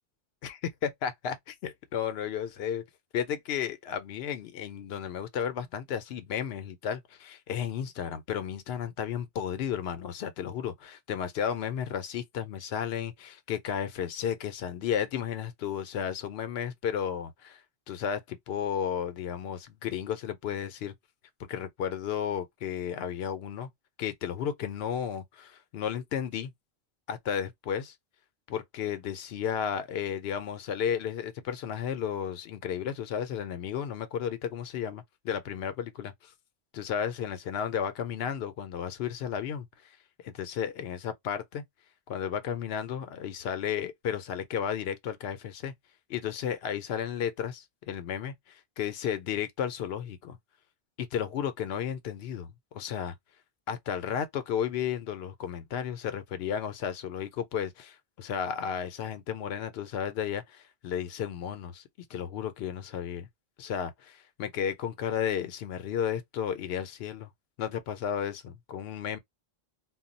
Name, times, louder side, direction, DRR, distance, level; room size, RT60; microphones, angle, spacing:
voice 1, 0.4-2.8 3.1-17.6 17.9-20.9 21.5-23.7 24.0-26.5 27.1-27.9 28.5-36.3 36.7-39.7 40.2-41.6 42.1-45.7 46.1-50.4 51.0-53.1 53.7-61.8 62.1-63.3 63.6-67.3 67.6-69.2, left 8 dB, 75° left, 0.8 m, -33 dB
2.3 x 2.0 x 3.7 m
omnidirectional pair, 1.1 m